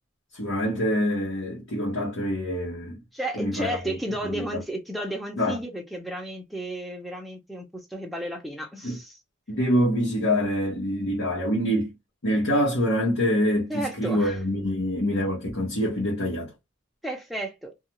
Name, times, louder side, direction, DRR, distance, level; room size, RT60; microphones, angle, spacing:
voice 1, 0.3-3.0 3.3-3.9 4.2-4.6 5.4-5.6 8.8-9.0 9.5-11.9 12.2-16.5, equal, 85° left, 1.1 m, -25 dB
voice 2, 3.1-9.2 13.7-14.4 17.0-17.7, right 1 dB, ahead, 0.6 m, -33 dB
2.4 x 2.3 x 2.9 m
head